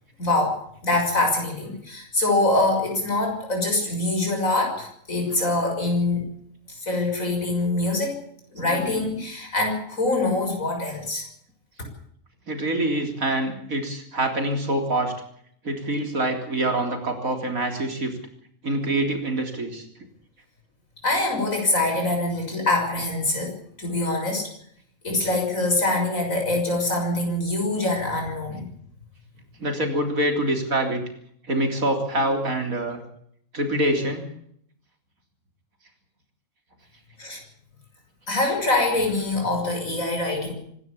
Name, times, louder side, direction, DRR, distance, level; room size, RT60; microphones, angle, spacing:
voice 1, 0.2-6.2 6.7-8.2 8.5-11.3 21.0-24.5 25.0-28.7 37.2-37.4 38.3-40.5, left 2 dB, 65° left, 2 dB, 6.7 m, -24 dB
voice 2, 12.5-15.1 15.6-18.1 18.6-19.9 29.6-31.0 31.5-33.0 33.5-34.2, right 1 dB, 70° right, 4 dB, 4.0 m, -25 dB
25.5 x 12.5 x 8.5 m, 0.67 s
omnidirectional pair, 1.5 m